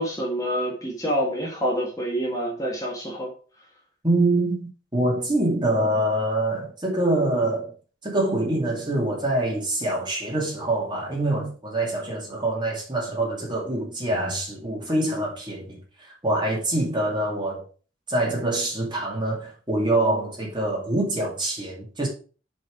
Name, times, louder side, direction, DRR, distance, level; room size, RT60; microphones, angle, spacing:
voice 1, 0.0-3.3, equal, 20° left, 1.9 m, -27 dB
voice 2, 4.0-7.7 8.0-17.6 18.1-22.1, right 1 dB, 25° right, 2.4 m, -25 dB
5.9 x 5.3 x 4.9 m
head